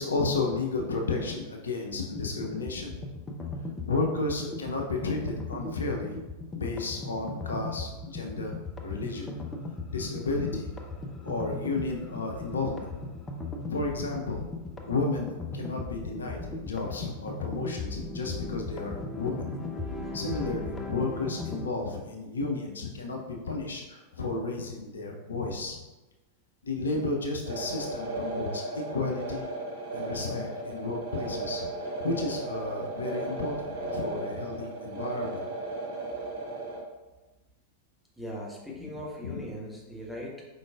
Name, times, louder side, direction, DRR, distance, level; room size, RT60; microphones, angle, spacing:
voice 1, 0.0-2.9 3.9-6.2 6.5-8.5 8.8-9.3 9.9-10.7 11.2-13.1 13.6-14.4 14.9-19.5 20.1-25.8 26.6-29.4 29.9-31.7 32.0-35.5 38.8-38.9 39.2-39.4, left 3 dB, 70° left, 1 dB, 0.6 m, -32 dB
sound 1, 2.2-21.7, left 3 dB, 15° left, 0.5 m, -38 dB
sound 2, 27.4-36.8, right 2 dB, 60° right, 1.4 m, -35 dB
voice 2, 38.2-40.5, equal, 5° right, -4 dB, 1.1 m, -39 dB
4.7 x 3.8 x 2.3 m, 1.1 s
figure-of-eight pair, 90°, 0 cm